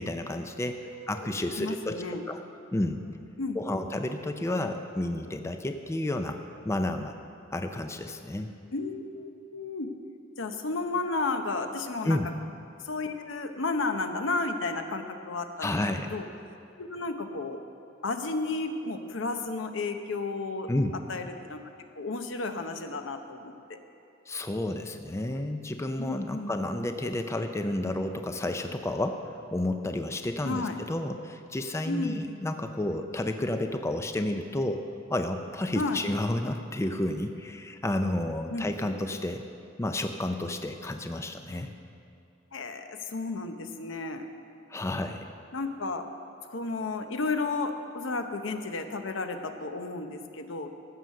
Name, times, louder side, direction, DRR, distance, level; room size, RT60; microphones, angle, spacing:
voice 1, 0.0-0.8 1.1-2.4 2.7-3.0 3.5-6.4 6.6-7.1 7.5-8.5 12.0-12.3 15.6-16.1 20.7-21.0 24.3-34.8 35.1-39.4 39.8-41.7 44.7-45.3, left 1 dB, 15° left, 6 dB, 0.4 m, -31 dB
voice 2, 0.8-1.3 1.6-2.2 3.4-3.8 8.7-9.9 10.4-12.2 12.8-15.8 16.1-16.3 16.8-17.6 18.0-20.7 21.1-21.6 21.9-23.8 26.0-26.8 30.4-30.8 31.9-32.2 35.7-36.0 38.5-38.9 42.5-44.3 45.5-46.0 46.5-50.7, left 3 dB, 75° left, 7 dB, 0.8 m, -33 dB
15.0 x 6.4 x 6.5 m, 2.5 s
head